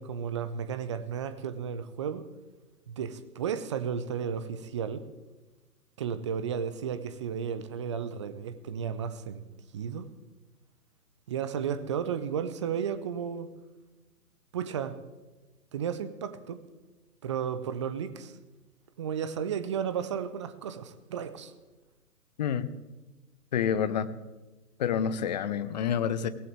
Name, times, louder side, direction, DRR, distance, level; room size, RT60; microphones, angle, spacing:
voice 1, 0.0-2.3 2.9-5.0 6.0-9.4 9.7-10.1 11.3-13.5 14.5-15.0 15.7-16.6 17.2-18.4 19.0-21.5, right 7 dB, 20° right, 12 dB, 0.7 m, -33 dB
voice 2, 23.5-24.1 24.8-26.3, left 8 dB, 30° left, 13 dB, 0.8 m, -28 dB
22.5 x 18.5 x 3.4 m, 1.2 s
figure-of-eight pair, 130°, 47 cm